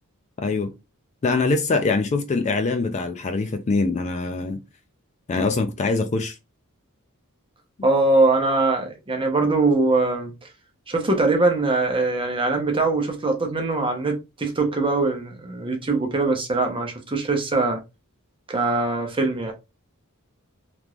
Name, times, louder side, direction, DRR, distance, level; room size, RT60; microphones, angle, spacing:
voice 1, 0.4-0.7 1.2-4.6 5.3-6.4 7.8-7.9, left 3 dB, 30° left, 0.4 m, -23 dB
voice 2, 7.8-10.3 10.9-17.8 18.5-19.5, right 3 dB, 25° right, 0.9 m, -22 dB
3.5 x 3.0 x 2.4 m
head